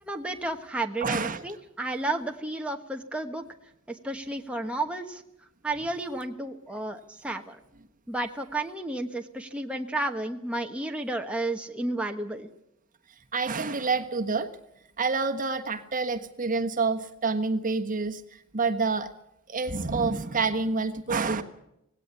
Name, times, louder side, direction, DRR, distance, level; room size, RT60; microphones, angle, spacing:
voice 1, 0.0-3.4 3.9-5.2 5.6-7.6 8.1-12.5, right 2 dB, 5° right, 3 dB, 1.3 m, -32 dB
voice 2, 1.0-1.4 13.3-14.5 15.0-19.1 19.5-21.4, right 4 dB, 40° right, 7 dB, 1.4 m, -28 dB
19.0 x 17.0 x 8.3 m, 0.82 s
head